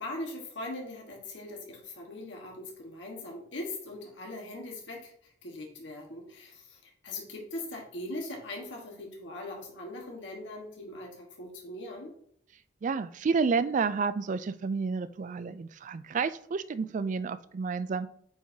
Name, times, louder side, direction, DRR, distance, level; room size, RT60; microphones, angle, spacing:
voice 1, 0.0-5.1 5.4-12.1, left 1 dB, 85° left, 0 dB, 1.4 m, -40 dB
voice 2, 12.8-18.1, right 5 dB, 45° right, 14 dB, 0.3 m, -30 dB
8.1 x 4.8 x 2.7 m, 0.67 s
head